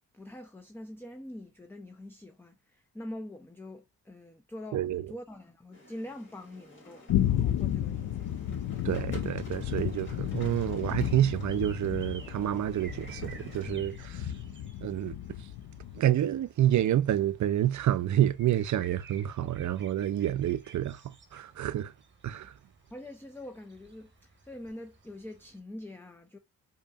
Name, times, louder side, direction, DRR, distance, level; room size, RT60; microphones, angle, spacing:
voice 1, 0.1-8.3 8.8-8.9 22.9-26.4, left 1 dB, 5° left, 0.4 m, -44 dB
voice 2, 4.7-5.1 8.8-14.3 14.8-15.2 15.9-21.9 22.2-22.5, right 12 dB, 55° right, 0.4 m, -28 dB
sound 1, 5.7-13.7, left 2 dB, 30° left, 2.3 m, -52 dB
sound 2, 7.1-16.0, left 11 dB, 60° left, 0.5 m, -33 dB
sound 3, 8.1-25.6, right 4 dB, 30° right, 1.0 m, -56 dB
4.9 x 2.9 x 2.3 m
cardioid pair, 90°, 36 cm